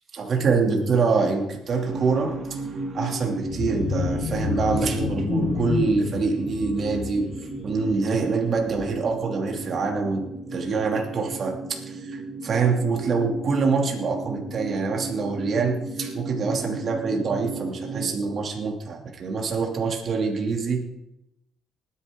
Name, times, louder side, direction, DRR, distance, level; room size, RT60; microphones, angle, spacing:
voice 1, 0.2-10.2 10.5-20.8, right 4 dB, 55° right, 1 dB, 2.6 m, -25 dB
sound 1, 1.8-18.1, right 2 dB, 25° right, 2.0 m, -35 dB
sound 2, 3.4-9.2 9.6-9.8 10.2-10.3, left 7 dB, 65° left, 0.9 m, -31 dB
19.5 x 9.9 x 3.7 m, 0.87 s
cardioid pair, 90°, 0 cm